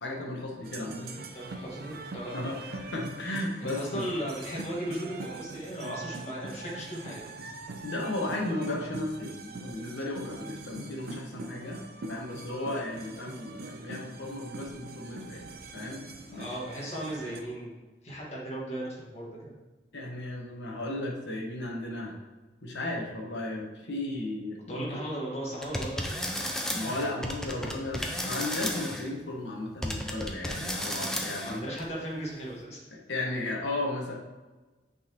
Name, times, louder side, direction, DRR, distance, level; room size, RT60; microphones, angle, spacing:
voice 1, 0.0-1.1 2.3-4.1 7.8-11.8 12.1-15.5 15.7-16.5 19.9-22.2 22.6-25.0 26.7-31.7 32.9-34.2, left 1 dB, 75° left, -1 dB, 1.1 m, -35 dB
sound 1, 0.6-17.4, right 2 dB, 55° right, 0.5 m, -43 dB
voice 2, 1.3-2.3 3.6-7.3 16.3-17.7 18.0-19.5 24.7-26.5 27.5-27.7 31.3-32.9, right 1 dB, 35° left, -5 dB, 1.5 m, -37 dB
sound 2, 25.6-29.1 29.8-31.8, equal, 5° left, 0.6 m, -33 dB
8.6 x 4.0 x 2.9 m, 1.2 s
head